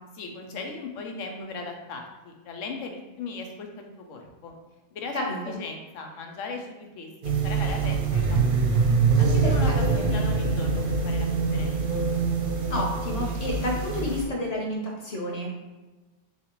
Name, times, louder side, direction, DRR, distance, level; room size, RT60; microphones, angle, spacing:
voice 1, 0.1-4.6 4.9-5.2 5.4-8.8 9.2-12.0, left 3 dB, 85° left, 3 dB, 1.1 m, -38 dB
voice 2, 5.1-5.6 9.4-10.0 12.7-15.5, left 1 dB, 35° left, -2 dB, 1.0 m, -30 dB
sound 1, 7.2-14.3, right 4 dB, 55° right, 0.7 m, -24 dB
7.0 x 2.4 x 3.0 m, 1.2 s
omnidirectional pair, 1.3 m